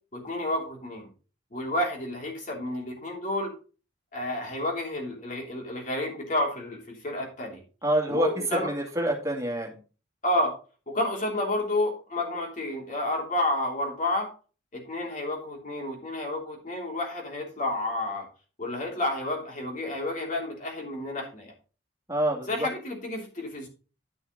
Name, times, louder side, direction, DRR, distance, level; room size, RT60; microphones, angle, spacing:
voice 1, 0.1-1.1 1.5-3.5 4.1-7.6 8.1-8.7 10.2-10.5 10.9-14.3 14.7-18.2 18.6-21.5 22.5-23.7, left 1 dB, 40° left, 0 dB, 3.3 m, -30 dB
voice 2, 7.8-9.8 22.1-22.7, right 1 dB, 15° right, 0 dB, 2.3 m, -27 dB
11.0 x 6.2 x 4.0 m, 0.36 s
head